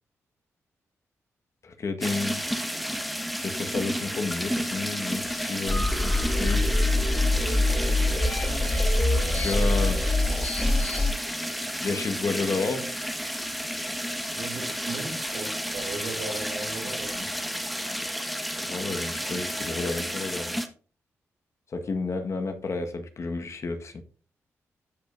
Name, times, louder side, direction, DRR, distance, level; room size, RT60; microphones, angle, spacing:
voice 1, 1.6-2.4 3.4-6.7 9.3-10.0 11.8-12.9 17.2-17.3 18.6-20.6 21.7-24.0, left 3 dB, 55° left, 1.4 m, -31 dB
sound 1, 2.0-20.7, equal, ahead, 1.3 m, -32 dB
sound 2, 5.7-11.1, left 2 dB, 35° left, 3.6 m, -24 dB
voice 2, 8.8-9.3 14.3-17.3, right 3 dB, 85° right, 2.7 m, -38 dB
14.0 x 5.2 x 2.6 m
supercardioid pair, 55°, 6 cm